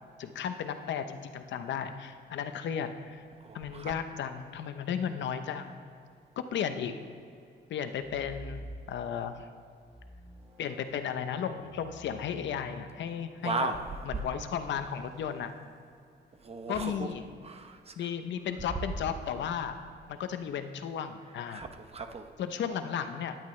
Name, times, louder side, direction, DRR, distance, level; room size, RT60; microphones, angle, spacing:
voice 1, 0.2-3.2 3.5-5.8 6.4-6.9 7.7-8.6 8.9-9.5 10.6-13.7 14.0-15.5 16.7-17.2 18.0-19.7 20.1-21.6 22.4-23.4, left 8 dB, 90° left, 9 dB, 0.8 m, -34 dB
voice 2, 3.4-4.0 13.4-14.0 16.4-17.1 17.4-18.1 18.6-18.8 21.5-22.3, right 4 dB, 35° right, 6 dB, 0.9 m, -36 dB
sound 1, 7.9-9.3 9.7-15.3 16.8-17.1, equal, ahead, 3.1 m, -50 dB
17.5 x 10.5 x 3.2 m, 2.5 s
cardioid pair, 130°, 18 cm